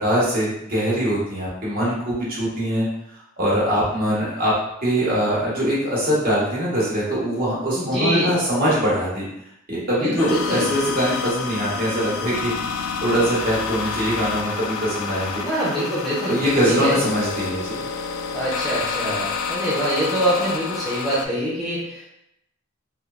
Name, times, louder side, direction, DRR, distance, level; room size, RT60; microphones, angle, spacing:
voice 1, 0.0-2.9 3.4-4.5 4.8-9.2 9.7-12.5 12.8-15.4 16.3-17.9, equal, 45° right, -7 dB, 1.0 m, -22 dB
voice 2, 7.8-8.4 10.0-10.7 15.4-16.4 16.6-17.0 18.3-22.1, equal, ahead, -8 dB, 0.5 m, -24 dB
sound 1, 10.2-21.3, left 5 dB, 85° left, 0.3 m, -29 dB
3.2 x 2.0 x 2.3 m, 0.79 s
head